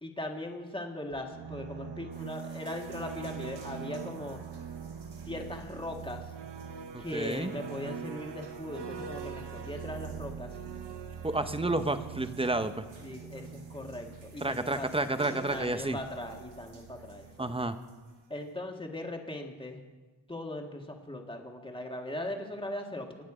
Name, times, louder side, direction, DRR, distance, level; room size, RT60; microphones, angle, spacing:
voice 1, 0.0-4.4 5.2-6.3 7.0-10.5 13.0-14.9 15.3-17.5 18.3-19.8 20.3-23.2, left 1 dB, 10° left, 2 dB, 1.7 m, -39 dB
sound 1, 1.1-17.7, right 6 dB, 65° right, 0.9 m, -43 dB
sound 2, 2.1-18.6, right 3 dB, 85° right, 4.0 m, -60 dB
voice 2, 6.9-7.5 11.2-12.8 14.4-16.0 17.4-17.8, right 2 dB, 10° right, 10 dB, 0.8 m, -30 dB
25.0 x 9.2 x 5.0 m, 1.3 s
wide cardioid pair, 120°, 46 cm